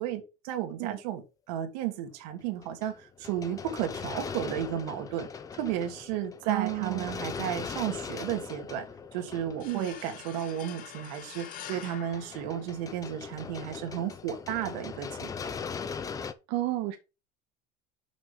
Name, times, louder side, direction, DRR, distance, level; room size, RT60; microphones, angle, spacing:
voice 1, 0.0-8.9 9.1-15.3, right 10 dB, 80° right, 1.7 m, -33 dB
sound 1, 2.6-10.5 11.9-16.3, left 6 dB, 15° left, 0.5 m, -40 dB
voice 2, 6.4-7.1 9.6-9.9 16.5-17.0, right 17 dB, 60° right, 1.0 m, -31 dB
sound 2, 9.6-13.2, left 9 dB, 40° left, 1.3 m, -45 dB
6.1 x 5.8 x 4.9 m
cardioid pair, 155°, 21 cm